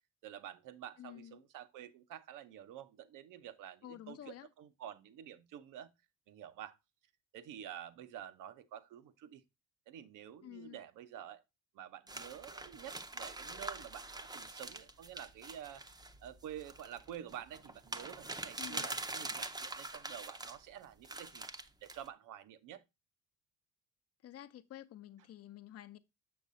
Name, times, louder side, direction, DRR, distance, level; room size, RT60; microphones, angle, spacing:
voice 1, 0.2-5.9 6.3-6.8 7.3-9.4 9.9-11.4 11.7-15.8 16.2-21.5 21.8-22.8, right 10 dB, 70° right, 0.9 m, -49 dB
voice 2, 1.0-1.4 3.8-4.5 10.4-10.8 18.6-18.9 24.2-26.0, left 12 dB, 45° left, 0.7 m, -50 dB
sound 1, 12.1-20.6 21.0-22.1, right 2 dB, 10° right, 0.7 m, -44 dB
6.8 x 6.5 x 2.6 m
cardioid pair, 90°, 33 cm